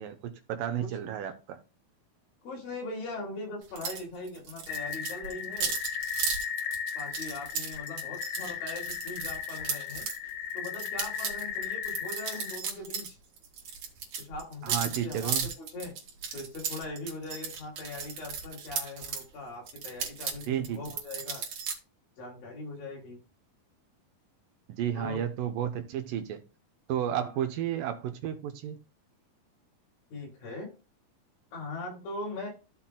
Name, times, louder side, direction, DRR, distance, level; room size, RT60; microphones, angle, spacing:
voice 1, 0.0-1.6 14.6-15.5 20.5-20.8 24.8-26.4 26.9-28.8, right 10 dB, 75° right, 2.1 m, -32 dB
voice 2, 2.4-5.8 7.0-10.1 10.5-13.2 14.2-15.9 16.3-21.4 22.2-23.2 24.9-25.2 27.1-27.3 30.1-30.7 31.5-32.5, left 2 dB, 65° left, 4.1 m, -40 dB
sound 1, 3.8-4.0 4.3-10.2 10.6-13.1 13.4-19.2 19.7-21.7, right 6 dB, 55° right, 2.8 m, -35 dB
sound 2, 4.7-12.6, left 8 dB, 85° left, 2.6 m, -36 dB
15.0 x 5.8 x 2.2 m
omnidirectional pair, 4.4 m